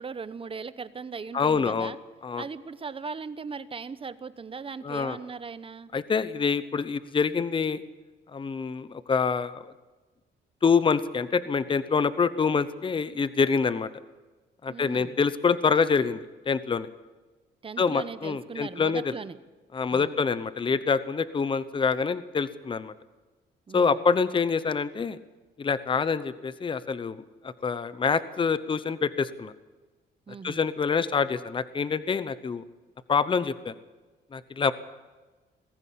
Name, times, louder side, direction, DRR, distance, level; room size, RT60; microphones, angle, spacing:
voice 1, 0.0-2.0 2.4-5.9 14.7-15.1 17.6-19.4 19.9-20.1 23.7-24.0 30.3-30.6, right 5 dB, 30° right, 15 dB, 0.9 m, -38 dB
voice 2, 1.3-1.9 2.2-2.4 4.8-5.2 5.9-7.8 8.3-9.6 10.6-13.9 14.6-16.9 17.8-19.1 19.7-22.9 23.7-25.2 25.6-29.5 30.4-32.6 33.1-33.7 34.3-34.7, left 5 dB, 25° left, 14 dB, 0.8 m, -26 dB
21.0 x 15.5 x 8.6 m, 1.2 s
cardioid pair, 125°, 19 cm